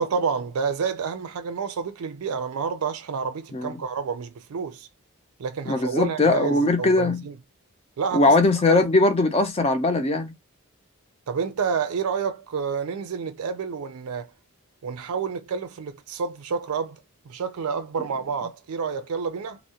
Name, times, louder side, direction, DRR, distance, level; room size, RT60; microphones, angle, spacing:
voice 1, 0.0-4.9 5.4-7.3 8.0-8.3 8.7-8.9 11.3-14.3 14.8-17.0 17.3-19.6, right 5 dB, 80° right, 0.4 m, -29 dB
voice 2, 5.7-7.2 8.1-10.3, left 2 dB, 25° left, 0.4 m, -20 dB
2.3 x 2.0 x 2.7 m
head